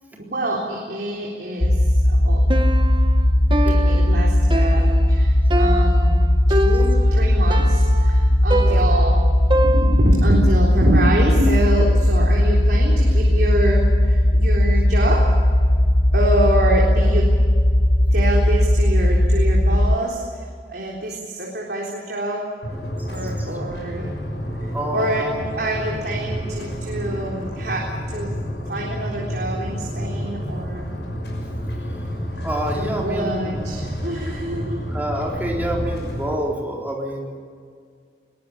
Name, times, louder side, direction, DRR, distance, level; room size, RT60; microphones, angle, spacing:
voice 1, 0.2-2.4 3.6-9.2 9.5-15.4 16.1-17.3 18.1-20.2 20.7-22.5 23.1-24.1 24.9-25.3 25.6-28.3 28.7-30.9 32.3-32.5 32.7-34.8, right 1 dB, 60° right, -2 dB, 3.7 m, -26 dB
sound 1, 1.6-20.0, left 1 dB, 30° left, 0.9 m, -17 dB
Piano, 2.5-10.4, right 1 dB, 25° right, 1.3 m, -26 dB
sound 2, 22.6-36.3, equal, 75° left, 6.0 m, -29 dB
voice 2, 24.7-25.4 32.4-33.6 34.1-34.3 34.9-37.4, right 1 dB, 10° right, -1 dB, 4.0 m, -28 dB
21.5 x 19.0 x 8.6 m, 2.1 s
head